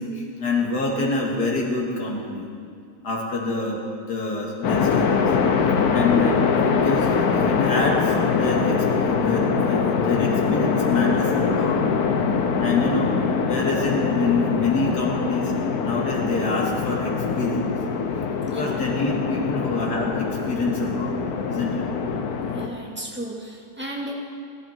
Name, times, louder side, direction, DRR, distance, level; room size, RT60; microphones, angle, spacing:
voice 1, 0.0-2.5 3.0-5.2 5.9-11.8 12.6-15.5 15.8-17.7 18.5-21.1 21.5-21.9, left 3 dB, 85° left, -1 dB, 2.7 m, -26 dB
sound 1, 4.6-22.7, left 5 dB, 70° left, 1.4 m, -23 dB
voice 2, 18.4-18.9 22.5-24.1, right 1 dB, 5° right, -3 dB, 2.2 m, -34 dB
20.0 x 12.0 x 4.5 m, 2.3 s
omnidirectional pair, 1.7 m